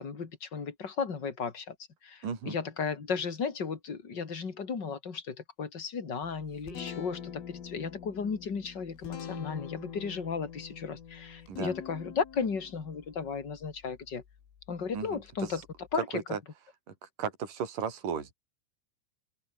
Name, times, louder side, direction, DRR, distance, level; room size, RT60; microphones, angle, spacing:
voice 1, 0.0-1.7 2.0-14.2 14.7-15.6 15.9-16.2, left 5 dB, 30° left, 2.1 m, -35 dB
voice 2, 2.2-2.6 11.5-11.7 14.9-15.5 16.1-16.4 16.9-18.3, right 7 dB, 40° right, 5.8 m, -35 dB
Guitar, 6.2-16.0, left 8 dB, 80° left, 6.5 m, -45 dB
open air
omnidirectional pair, 5.8 m